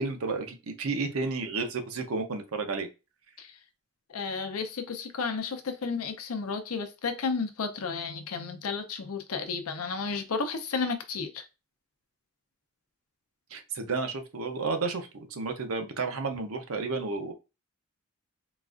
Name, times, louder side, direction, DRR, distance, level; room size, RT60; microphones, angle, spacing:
voice 1, 0.0-2.9 13.5-17.3, right 4 dB, 75° right, 0.7 m, -32 dB
voice 2, 4.1-11.4, left 4 dB, 85° left, 0.6 m, -32 dB
3.9 x 2.4 x 2.4 m
head